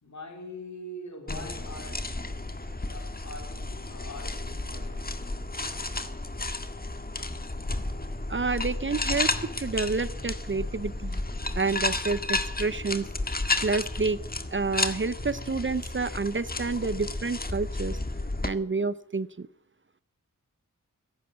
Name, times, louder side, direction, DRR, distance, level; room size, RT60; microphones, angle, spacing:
voice 1, 0.0-2.3 2.8-5.3, left 1 dB, 55° left, 3.8 m, -43 dB
sound 1, 1.3-18.5, left 2 dB, 25° left, 1.7 m, -32 dB
voice 2, 8.3-11.2 11.5-13.1 13.6-14.2 14.5-18.0 18.4-19.5, right 4 dB, 35° right, 0.7 m, -29 dB
15.5 x 11.0 x 8.2 m
cardioid pair, 55°, 33 cm